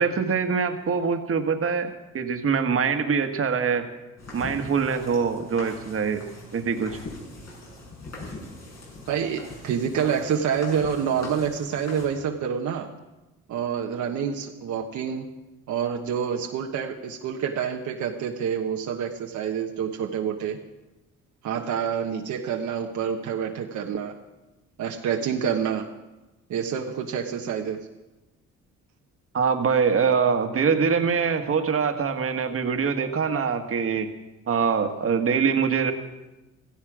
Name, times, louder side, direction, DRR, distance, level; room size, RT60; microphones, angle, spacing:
voice 1, 0.0-3.9 4.3-6.2 6.5-7.0 29.3-34.1 34.5-35.9, right 6 dB, 45° right, 6 dB, 1.6 m, -24 dB
sound 1, 4.2-12.1, left 2 dB, 60° left, 7.1 m, -42 dB
voice 2, 9.1-12.9 13.5-15.3 15.7-20.6 21.4-24.1 24.8-25.9 26.5-27.8, right 7 dB, 75° right, 2 dB, 1.2 m, -27 dB
16.5 x 14.0 x 5.0 m, 1.1 s
cardioid pair, 90°, 30 cm